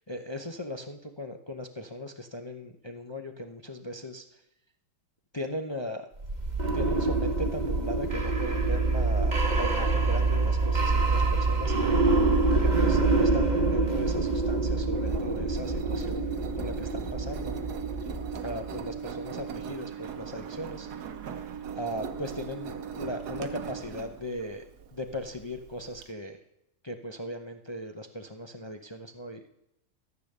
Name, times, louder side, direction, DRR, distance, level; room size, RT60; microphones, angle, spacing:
voice 1, 0.1-4.2 5.3-6.1 6.7-12.0 12.6-17.5 18.4-20.9 21.7-24.6 24.9-26.4 26.8-29.4, left 1 dB, 30° left, 5 dB, 0.5 m, -38 dB
sound 1, 6.2-19.0, right 3 dB, 30° right, 1.4 m, -26 dB
Engine, 14.3-26.0, right 7 dB, 80° right, 1.5 m, -39 dB
14.0 x 8.9 x 6.7 m, 0.84 s
omnidirectional pair, 1.7 m